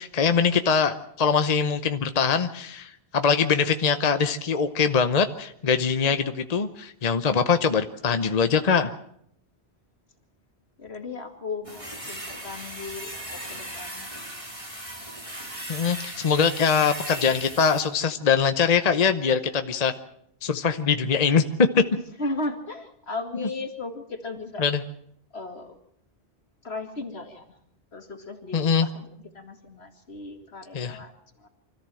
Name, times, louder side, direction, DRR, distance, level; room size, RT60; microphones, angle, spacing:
voice 1, 0.0-8.9 15.7-19.9 20.4-21.8 24.6-24.8 28.5-28.9 30.7-31.0, left 6 dB, 40° left, 9 dB, 0.9 m, -22 dB
voice 2, 10.8-13.1 13.5-14.1 22.2-24.6 25.3-25.8 26.6-27.5 27.9-31.5, left 3 dB, 75° left, 5 dB, 2.6 m, -36 dB
sound 1, 11.6-17.8, right 1 dB, 30° right, 4.1 m, -37 dB
24.5 x 14.5 x 7.7 m, 0.71 s
omnidirectional pair, 1.1 m